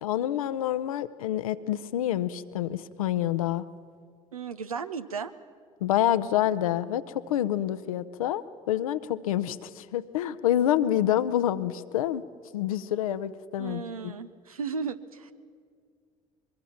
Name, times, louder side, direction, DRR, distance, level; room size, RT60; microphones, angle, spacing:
voice 1, 0.0-3.6 5.8-12.2 12.5-14.1, left 12 dB, 80° left, 13 dB, 0.7 m, -27 dB
voice 2, 4.3-5.3 13.6-15.3, right 5 dB, 90° right, 11 dB, 0.7 m, -35 dB
23.5 x 22.5 x 5.8 m, 2.1 s
figure-of-eight pair, 55°, 18 cm